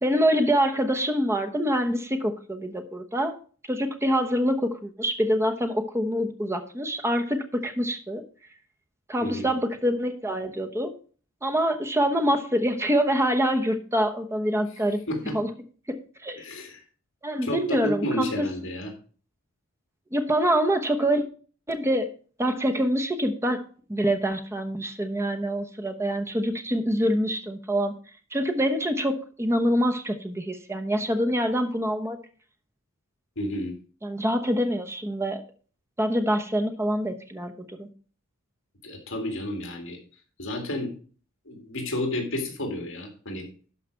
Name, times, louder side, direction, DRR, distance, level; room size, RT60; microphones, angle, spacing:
voice 1, 0.0-3.3 3.7-8.2 9.1-10.9 11.4-15.0 15.3-15.5 15.9-16.0 16.2-16.4 17.2-18.5 20.1-21.2 21.7-22.1 22.4-23.6 23.9-28.0 28.3-32.2 34.0-35.4 36.0-37.9, equal, 10° right, 5 dB, 1.0 m, -25 dB
voice 2, 15.1-15.4 16.4-16.8 17.4-18.9 33.4-33.8 38.8-40.0 40.4-40.9 41.5-43.5, left 1 dB, 60° left, 2 dB, 2.1 m, -31 dB
12.0 x 5.0 x 4.5 m, 0.40 s
head